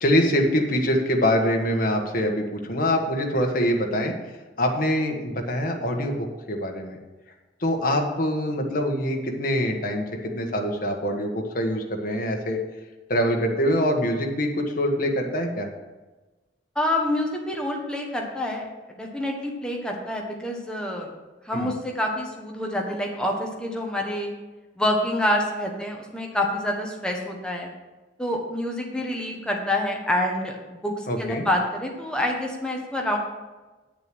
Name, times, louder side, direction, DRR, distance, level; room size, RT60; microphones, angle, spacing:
voice 1, 0.0-4.1 4.6-7.0 7.6-12.6 13.1-15.7 21.5-21.7 31.1-31.4, equal, 50° left, 2 dB, 1.4 m, -24 dB
voice 2, 16.7-21.1 21.4-24.3 24.8-27.7 28.2-33.2, left 1 dB, 5° left, 0 dB, 1.4 m, -27 dB
9.3 x 6.8 x 6.1 m, 1.2 s
head